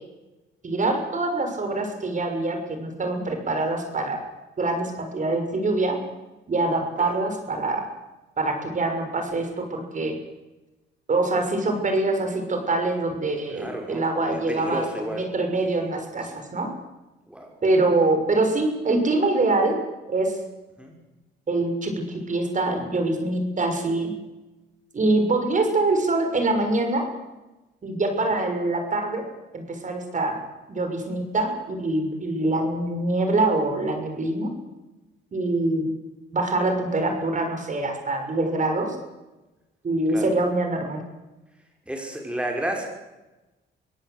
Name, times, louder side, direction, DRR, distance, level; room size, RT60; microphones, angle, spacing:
voice 1, 0.6-4.2 4.6-6.0 6.5-7.8 8.4-10.1 11.1-14.8 15.1-16.7 17.6-19.8 20.1-20.4 21.5-24.1 24.9-27.1 27.8-29.2 29.5-30.4 30.7-34.5 35.3-35.9 36.3-38.9 39.8-41.0, right 2 dB, 40° right, 5 dB, 6.5 m, -24 dB
voice 2, 13.5-15.3 15.7-15.8 17.3-17.5 20.8-20.9 28.3-28.4 40.1-40.3 41.9-42.9, right 1 dB, 5° right, 1 dB, 5.5 m, -32 dB
24.5 x 17.5 x 8.2 m, 1.1 s
cardioid pair, 90°, 20 cm